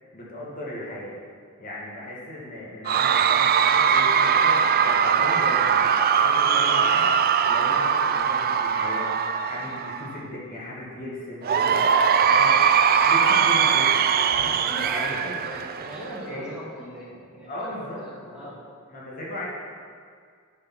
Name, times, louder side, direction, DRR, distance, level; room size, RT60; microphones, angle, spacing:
voice 1, 0.1-1.2 1.6-12.6 13.0-14.5 14.9-15.4 16.3-16.5 17.5-18.5 18.9-19.5, left 1 dB, 40° left, -5 dB, 1.8 m, -37 dB
Cheering / Crowd, 2.9-10.2 11.4-16.2, right 7 dB, 45° right, 0.4 m, -21 dB
voice 2, 14.5-18.6, right 1 dB, 5° right, -8 dB, 2.1 m, -39 dB
10.5 x 5.3 x 6.0 m, 2.1 s
head